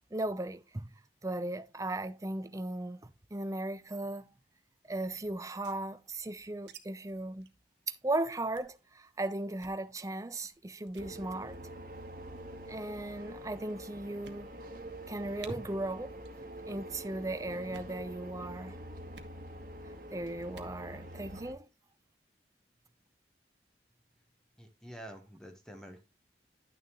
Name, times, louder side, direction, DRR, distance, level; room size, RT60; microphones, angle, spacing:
voice 1, 0.1-0.9 1.2-4.3 4.9-7.5 8.0-11.6 12.7-14.5 15.1-16.2 16.7-18.8 20.1-21.7, right 2 dB, 20° right, 0.6 m, -37 dB
sound 1, 5.4-6.8 7.1-7.2 7.4-7.6 8.0-8.1 8.5-8.8 9.5-9.8 10.4-10.6 10.9-11.1 12.0-12.4 13.2-13.3 13.7-13.8 14.2-14.8 15.1-15.2 15.4-15.5 16.2-16.5 16.7-17.1 17.6-18.0 19.1-19.4 20.4-20.8, right 6 dB, 75° right, 1.2 m, -53 dB
sound 2, 11.0-21.5, right 1 dB, 50° right, 1.4 m, -46 dB
voice 2, 24.6-26.0, right 1 dB, 5° left, 1.1 m, -48 dB
11.0 x 6.5 x 3.0 m
head